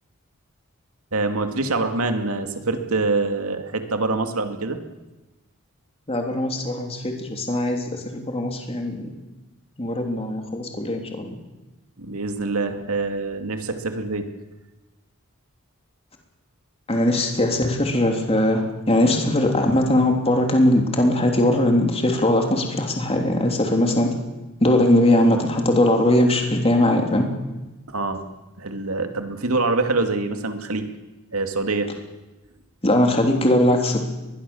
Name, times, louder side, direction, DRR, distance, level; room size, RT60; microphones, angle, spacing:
voice 1, 1.1-4.8 12.0-14.2 27.9-28.2 28.6-30.9 31.3-31.9, right 3 dB, 85° right, 6 dB, 2.4 m, -25 dB
voice 2, 6.1-9.1 9.8-11.3 16.9-24.2 24.6-27.3 32.8-34.0, left 1 dB, 30° left, 2 dB, 3.2 m, -20 dB
23.0 x 21.5 x 7.2 m, 1.1 s
head